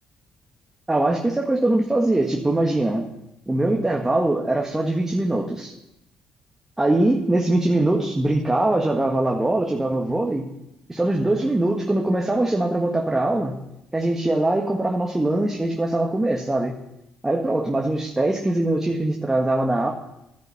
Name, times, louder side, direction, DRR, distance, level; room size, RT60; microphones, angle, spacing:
voice 1, 0.9-3.0 3.5-5.7 6.8-10.4 10.9-13.5 13.9-16.7 17.2-19.9, right 2 dB, 15° right, 1 dB, 1.5 m, -22 dB
11.5 x 10.5 x 7.1 m, 0.87 s
supercardioid pair, 70°, 2 cm